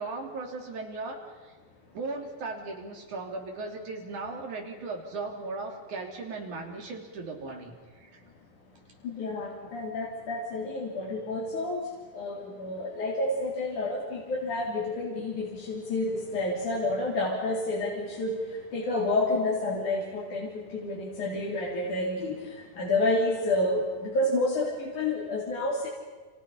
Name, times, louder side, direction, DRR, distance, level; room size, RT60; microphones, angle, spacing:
voice 1, 0.0-1.5 1.9-8.2, right 3 dB, 75° right, 1 dB, 4.6 m, -37 dB
voice 2, 9.0-11.8 12.1-18.4 18.7-22.4 22.8-25.9, left 2 dB, 75° left, -4 dB, 4.9 m, -29 dB
29.5 x 28.0 x 5.7 m, 1.3 s
omnidirectional pair, 3.5 m